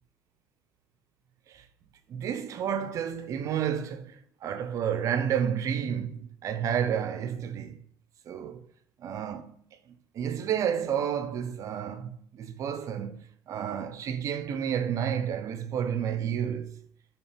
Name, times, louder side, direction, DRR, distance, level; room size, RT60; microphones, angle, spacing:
voice 1, 2.1-7.8 8.3-8.6 9.0-13.2 13.5-16.8, right 8 dB, 55° right, 0.4 m, -31 dB
4.3 x 2.9 x 3.3 m
supercardioid pair, 90°, 7 cm